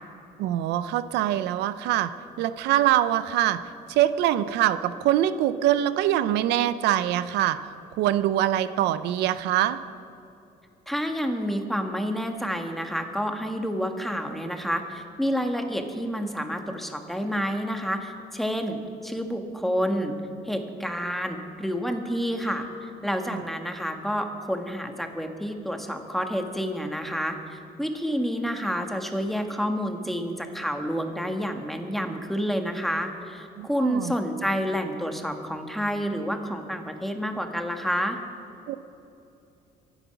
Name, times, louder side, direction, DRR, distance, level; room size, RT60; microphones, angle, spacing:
voice 1, 0.4-2.1 2.4-3.6 3.9-7.6 8.0-9.8 33.6-34.1 38.7-38.8, right 12 dB, 85° right, 13 dB, 0.6 m, -23 dB
voice 2, 10.9-20.1 20.4-38.2, equal, ahead, 4 dB, 1.5 m, -29 dB
24.0 x 8.1 x 5.9 m, 2.8 s
cardioid pair, 110°, 17 cm